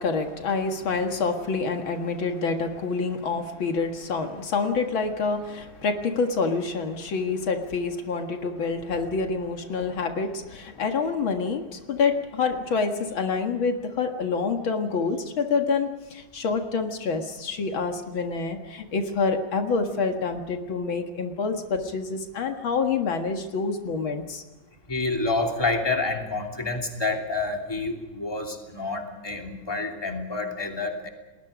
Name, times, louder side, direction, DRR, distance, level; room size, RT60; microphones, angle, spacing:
voice 1, 0.0-24.4, left 4 dB, 75° left, 4 dB, 2.6 m, -27 dB
voice 2, 24.9-31.1, left 3 dB, 10° left, 2 dB, 3.0 m, -28 dB
30.0 x 20.5 x 5.1 m, 1.1 s
omnidirectional pair, 2.2 m